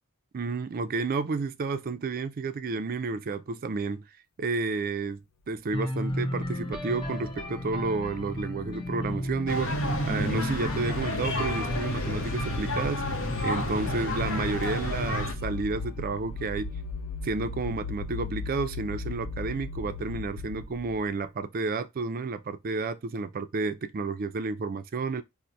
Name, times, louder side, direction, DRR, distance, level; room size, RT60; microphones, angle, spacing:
voice 1, 0.3-4.0 4.4-13.0 13.4-16.7 17.2-25.2, right 4 dB, 40° right, 0.4 m, -31 dB
sound 1, 5.7-15.5, equal, 20° left, 0.5 m, -35 dB
sound 2, 5.9-21.2, left 3 dB, 90° left, 0.4 m, -39 dB
sound 3, 9.5-15.3, left 1 dB, 65° left, 0.8 m, -30 dB
4.4 x 2.1 x 2.6 m
head